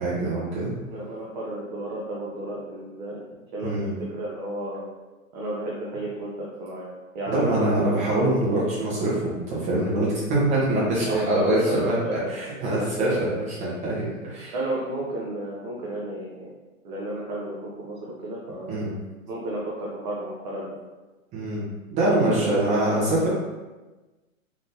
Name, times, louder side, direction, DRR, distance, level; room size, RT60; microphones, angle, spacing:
voice 1, 0.0-0.7 3.6-3.9 7.3-14.5 18.7-18.9 21.3-23.3, right 1 dB, 15° right, -7 dB, 1.2 m, -24 dB
voice 2, 0.9-3.2 3.5-4.8 5.3-6.9 7.1-8.0 8.4-8.5 11.0-12.3 12.7-13.4 14.5-16.5 16.8-18.8 19.3-20.8 22.3-23.1, right 1 dB, 35° right, -5 dB, 0.7 m, -32 dB
3.8 x 3.4 x 2.7 m, 1.2 s
hypercardioid pair, 150°, 42 cm